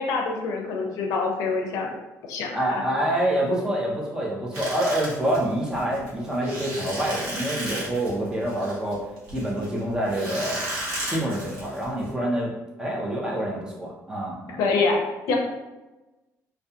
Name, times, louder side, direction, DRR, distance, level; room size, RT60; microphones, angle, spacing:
voice 1, 0.0-1.9 2.3-2.8 14.6-15.4, left 4 dB, 75° left, 1 dB, 0.5 m, -25 dB
voice 2, 2.5-9.0 9.3-10.6 11.1-12.5 12.8-14.6, right 1 dB, 10° right, -4 dB, 0.5 m, -26 dB
sound 1, 4.5-12.1, right 1 dB, 90° right, 1.0 m, -34 dB
2.2 x 2.2 x 2.7 m, 1.1 s
cardioid pair, 160°, 6 cm